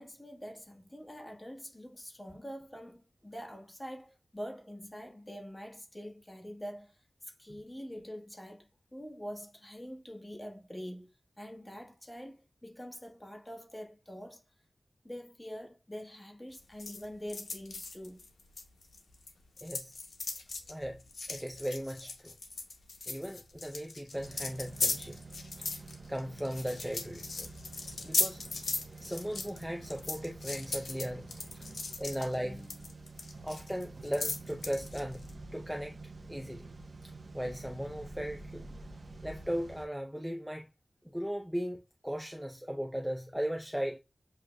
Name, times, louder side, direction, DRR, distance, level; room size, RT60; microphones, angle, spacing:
voice 1, 0.0-14.4 15.0-18.2, equal, 20° left, 1.4 m, -45 dB
sound 1, 16.5-19.3 19.6-35.3, left 3 dB, 90° left, 0.7 m, -38 dB
voice 2, 19.6-19.9 20.7-21.0 21.3-22.3 23.1-25.2 25.6-25.7 26.1-27.5 28.0-28.4 29.0-31.7 32.0-32.9 33.4-36.0 36.3-36.7 37.0-38.6 39.2-40.7 41.0-44.0, equal, 5° right, 0.5 m, -37 dB
sound 2, 24.1-39.9, right 3 dB, 70° right, 0.9 m, -48 dB
7.7 x 2.7 x 2.2 m
wide cardioid pair, 55°, 0 cm